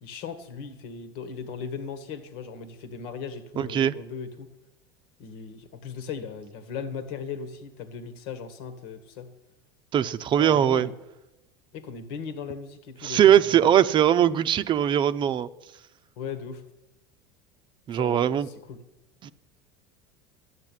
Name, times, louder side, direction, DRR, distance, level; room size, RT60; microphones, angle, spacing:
voice 1, 0.0-4.5 5.2-9.3 10.4-10.9 11.7-13.7 16.2-16.6 17.9-18.8, left 6 dB, 65° left, 1.7 m, -38 dB
voice 2, 3.6-3.9 9.9-10.9 13.0-15.5 17.9-18.5 19.2-19.3, right 10 dB, 40° right, 0.7 m, -21 dB
12.0 x 9.0 x 9.2 m
hypercardioid pair, 85°, 13 cm